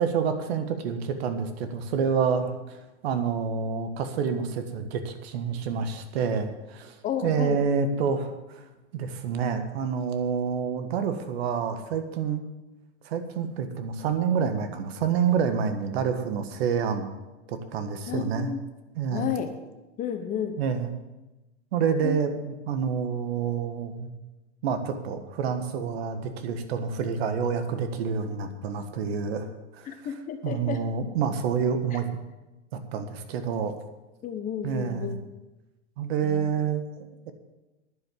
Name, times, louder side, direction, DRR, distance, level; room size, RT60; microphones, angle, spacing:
voice 1, 0.0-7.0 7.2-8.6 8.9-12.4 13.0-17.1 17.5-18.5 19.0-19.3 20.6-20.9 21.7-24.1 24.6-29.9 30.4-32.2 32.9-33.7 34.6-35.2 36.0-36.9, right 6 dB, 60° right, 8 dB, 1.6 m, -28 dB
voice 2, 7.0-7.6 18.1-18.6 19.1-19.5 20.0-20.6 22.0-22.2 29.9-30.8 31.9-32.0 34.2-35.2 36.2-36.5, left 8 dB, 20° left, 7 dB, 0.9 m, -32 dB
10.5 x 7.5 x 8.2 m, 1.0 s
hypercardioid pair, 130°, 36 cm